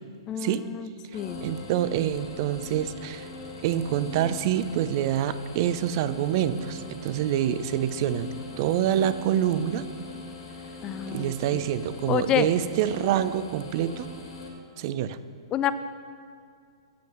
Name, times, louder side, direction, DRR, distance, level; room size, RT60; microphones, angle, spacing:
voice 1, 0.3-1.4 10.8-11.6 12.1-12.5 15.5-15.7, left 10 dB, 25° left, 13 dB, 0.4 m, -28 dB
sound 1, 1.1-14.5, left 3 dB, 70° left, 2.7 m, -41 dB
voice 2, 1.4-3.3 3.6-8.3 8.6-9.9 11.1-14.1 14.8-15.2, right 10 dB, 45° right, 13 dB, 0.5 m, -26 dB
8.5 x 7.7 x 6.0 m, 2.3 s
hypercardioid pair, 120°, 3 cm